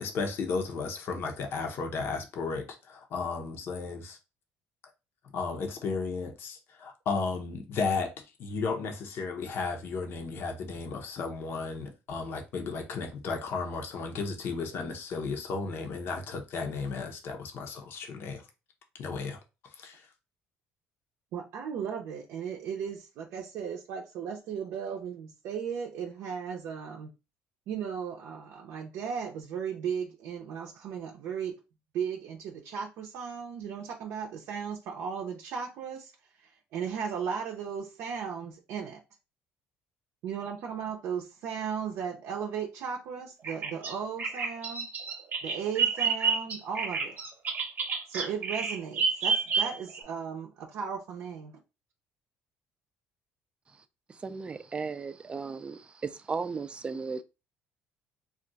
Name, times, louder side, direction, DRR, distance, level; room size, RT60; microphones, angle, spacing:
voice 1, 0.0-4.2 5.3-8.1 8.4-18.4 19.0-19.4 19.8-20.0, left 4 dB, 55° left, 0.7 m, -34 dB
voice 2, 21.3-27.1 27.7-31.5 31.9-36.1 36.7-39.0 40.2-44.9 45.4-47.2 48.1-51.5, right 7 dB, 70° right, 0.5 m, -36 dB
Bird vocalization bird call bird song, 43.4-50.0, right 5 dB, 40° right, 0.8 m, -29 dB
voice 3, 54.2-55.8 56.3-57.2, right 4 dB, 20° right, 0.3 m, -35 dB
2.4 x 2.3 x 3.8 m
cardioid pair, 120°, 5 cm